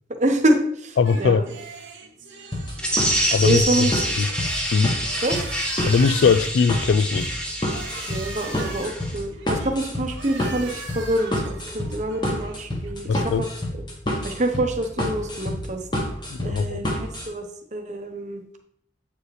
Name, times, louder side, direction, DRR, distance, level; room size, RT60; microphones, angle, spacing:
voice 1, 0.2-1.5 3.4-3.9 5.2-5.5 8.1-13.5 13.7-13.8 14.2-15.8 16.4-17.4 17.7-18.4, right 1 dB, 40° right, 0.8 m, -26 dB
voice 2, 1.0-1.4 3.3-3.9 4.2-4.3 4.7-5.0 5.8-7.3 13.1-13.4 16.3-16.8, left 5 dB, 70° left, 0.3 m, -20 dB
sound 1, 1.0-15.0, right 4 dB, 80° right, 1.3 m, -42 dB
sound 2, 2.5-17.3, left 1 dB, 25° left, 1.0 m, -29 dB
sound 3, 2.8-9.2, equal, 5° left, 0.7 m, -27 dB
8.1 x 4.9 x 3.2 m
head